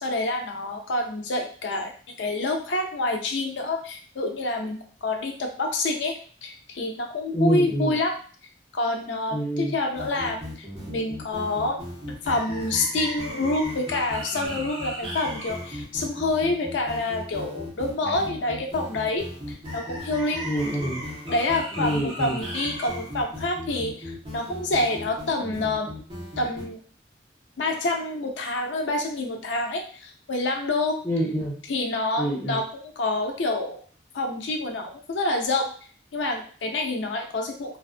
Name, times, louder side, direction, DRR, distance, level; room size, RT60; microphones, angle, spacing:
voice 1, 0.0-1.9 2.2-8.2 8.7-11.8 12.2-20.5 21.3-25.9 26.4-26.8 27.6-31.0 31.7-33.8 34.1-35.7 36.1-37.8, left 2 dB, 90° left, 2 dB, 0.5 m, -27 dB
voice 2, 7.3-8.0 9.3-9.7 20.4-21.0 21.8-22.4 31.0-31.6 32.2-32.6, right 1 dB, 15° left, -4 dB, 0.6 m, -26 dB
sound 1, 9.9-26.6, equal, 25° right, 0.9 m, -36 dB
2.5 x 2.3 x 2.4 m, 0.43 s
head